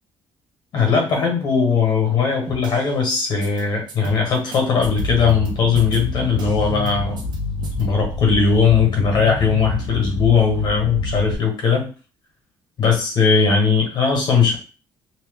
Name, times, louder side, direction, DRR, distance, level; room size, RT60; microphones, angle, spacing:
voice 1, 0.7-7.2 7.8-11.9 12.8-14.6, left 5 dB, 55° left, 2 dB, 1.3 m, -19 dB
sound 1, 2.5-3.2 3.4-3.6 3.9-5.5 5.7-6.9 7.2-7.4 7.6-7.8, right 4 dB, 60° right, 0.8 m, -36 dB
sound 2, 4.8-11.3, left 3 dB, 85° left, 0.5 m, -28 dB
2.9 x 2.3 x 3.6 m, 0.35 s
cardioid pair, 120°, 9 cm